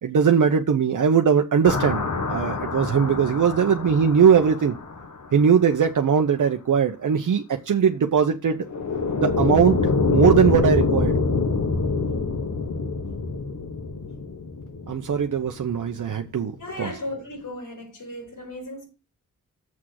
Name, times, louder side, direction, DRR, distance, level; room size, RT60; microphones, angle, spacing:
voice 1, 0.0-4.7 5.3-8.6 9.2-9.8 10.1-11.2 14.9-16.5 16.8-16.9, right 7 dB, 70° right, 0.9 m, -20 dB
sound 1, 1.6-5.6 8.6-15.7, left 4 dB, 60° left, 1.5 m, -25 dB
voice 2, 16.6-18.9, left 1 dB, 80° left, 4.9 m, -35 dB
7.4 x 6.2 x 6.4 m
wide cardioid pair, 145°, 32 cm